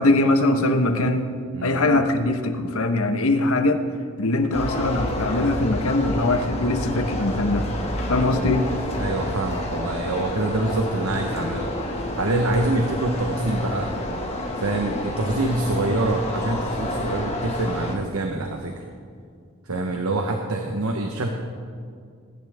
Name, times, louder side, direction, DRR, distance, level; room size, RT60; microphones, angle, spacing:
voice 1, 0.0-1.4 1.6-3.8 4.2-7.7 8.1-8.7, left 2 dB, 70° left, 6 dB, 1.1 m, -21 dB
voice 2, 1.5-1.9 8.3-11.7 12.2-13.9 14.6-18.8 19.6-21.3, right 2 dB, 75° right, 3 dB, 1.1 m, -26 dB
sound 1, 4.5-17.9, left 1 dB, 30° left, 1.9 m, -29 dB
24.5 x 11.0 x 3.6 m, 2.2 s
head